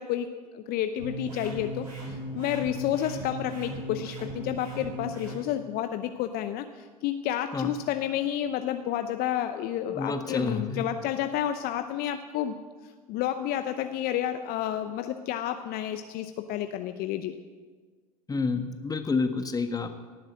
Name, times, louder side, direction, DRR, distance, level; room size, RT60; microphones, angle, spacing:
voice 1, 0.0-12.6 13.1-17.4, left 11 dB, 50° left, 9 dB, 0.8 m, -30 dB
sound 1, 1.0-5.4, right 1 dB, 80° right, 4.3 m, -37 dB
voice 2, 9.9-10.9 18.3-19.9, left 4 dB, 20° left, 7 dB, 1.5 m, -29 dB
17.0 x 7.7 x 7.6 m, 1.5 s
hypercardioid pair, 75°, 20 cm